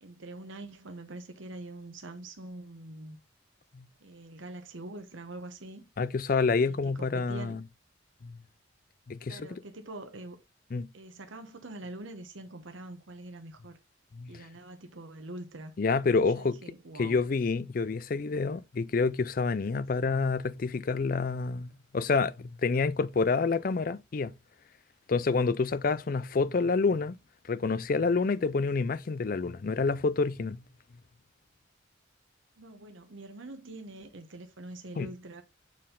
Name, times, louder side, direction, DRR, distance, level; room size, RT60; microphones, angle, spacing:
voice 1, 0.0-3.2 4.0-5.9 6.6-7.6 9.3-10.4 10.9-13.8 14.3-15.7 16.4-17.2 32.6-35.4, right 2 dB, 80° right, 1.0 m, -44 dB
voice 2, 6.0-7.6 8.2-8.4 9.1-9.6 10.7-10.9 14.1-14.5 15.8-16.6 17.0-24.3 25.1-27.2 27.5-30.6 35.0-35.1, left 4 dB, 45° left, 0.4 m, -28 dB
7.4 x 4.3 x 3.7 m
head